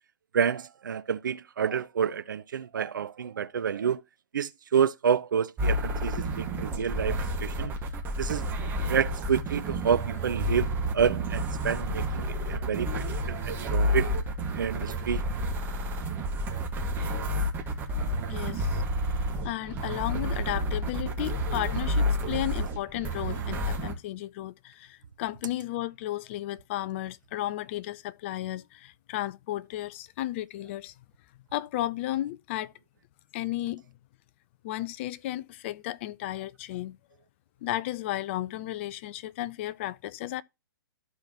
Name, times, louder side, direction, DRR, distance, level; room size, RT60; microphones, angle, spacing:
voice 1, 0.3-4.0 4.3-7.7 8.2-8.5 8.9-12.9 13.3-14.1 14.6-15.2, right 7 dB, 55° right, 0.5 m, -28 dB
sound 1, 5.6-23.9, equal, 15° right, 1.6 m, -30 dB
voice 2, 18.3-18.8 19.4-30.9 31.5-32.7 33.3-33.8 34.6-37.0 37.6-40.4, left 14 dB, 30° left, 0.5 m, -34 dB
13.5 x 4.7 x 2.9 m
figure-of-eight pair, 120°, 12 cm